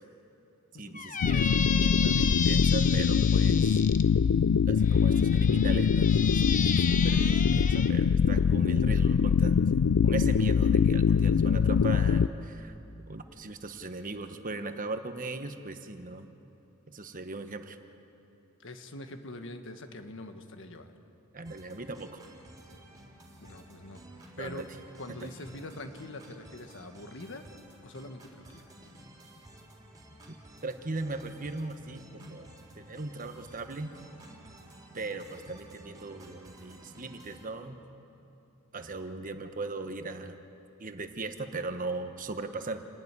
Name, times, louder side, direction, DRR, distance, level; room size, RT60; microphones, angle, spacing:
voice 1, 0.8-1.5 1.8-3.8 4.7-12.7 13.1-16.3 16.9-17.8 21.3-22.2 24.4-24.7 30.6-32.5 32.7-33.9 34.9-37.8 38.7-40.4 40.8-42.8, right 3 dB, 40° right, 8 dB, 1.1 m, -38 dB
Squeak, 0.9-4.0 4.8-7.9, left 6 dB, 35° left, 1.0 m, -33 dB
sound 1, 1.2-12.3, left 6 dB, 80° left, 0.4 m, -23 dB
voice 2, 18.6-20.9 23.4-24.0 24.4-24.6 25.0-27.4 27.8-28.7, left 2 dB, 60° left, 7 dB, 1.5 m, -44 dB
sound 2, 21.4-37.4, right 1 dB, 15° right, 3.8 m, -53 dB
28.0 x 12.0 x 9.7 m, 2.8 s
head